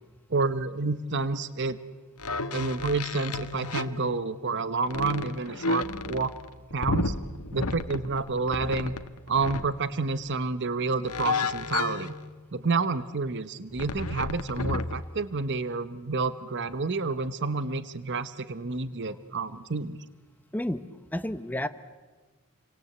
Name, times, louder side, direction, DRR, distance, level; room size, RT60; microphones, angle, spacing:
voice 1, 0.3-1.8 2.5-6.3 6.7-7.1 7.5-8.9 9.3-12.1 12.5-20.0, right 4 dB, 55° right, 13 dB, 1.0 m, -29 dB
sound 1, 2.2-4.6 4.9-9.7 11.1-12.4 13.8-15.1, left 3 dB, 85° left, 1.3 m, -32 dB
voice 2, 21.1-21.7, left 1 dB, 10° left, 11 dB, 0.8 m, -30 dB
30.0 x 24.5 x 8.1 m, 1.3 s
head